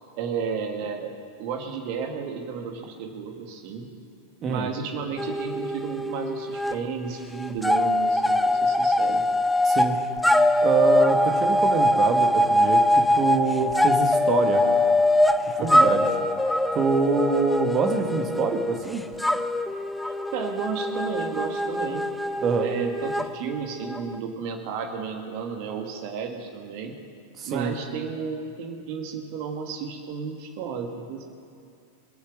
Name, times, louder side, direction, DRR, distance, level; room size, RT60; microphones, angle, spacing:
voice 1, 0.2-1.1 1.4-3.9 4.5-9.3 15.6-15.9 20.3-22.1 22.6-27.0 27.4-31.2, right 6 dB, 45° right, 4 dB, 1.8 m, -32 dB
sound 1, 5.2-6.8 7.1-24.2, left 1 dB, ahead, 0.5 m, -23 dB
voice 2, 9.6-10.0 10.6-12.8 13.1-14.6 15.5-16.0 16.7-19.0 22.4-22.7 27.4-27.7, right 5 dB, 30° right, 5 dB, 1.6 m, -25 dB
22.5 x 8.3 x 6.4 m, 2.4 s
figure-of-eight pair, 90°, 0 cm